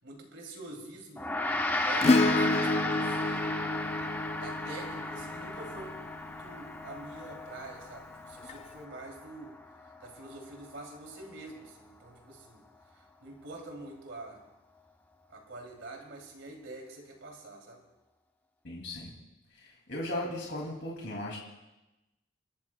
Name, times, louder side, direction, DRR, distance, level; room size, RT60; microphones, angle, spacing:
voice 1, 0.0-3.5 4.4-6.0 6.3-9.5 9.8-12.6 12.9-14.4 15.3-17.8, right 2 dB, 75° right, 1 dB, 2.8 m, -46 dB
Gong, 1.2-10.7, left 2 dB, 10° left, 0.8 m, -35 dB
Acoustic guitar / Strum, 2.0-6.6 8.5-8.6, left 2 dB, 30° left, 0.4 m, -29 dB
voice 2, 18.6-19.1 19.5-21.4, left 1 dB, 60° left, -2 dB, 2.4 m, -37 dB
29.0 x 12.5 x 2.2 m, 1.0 s
head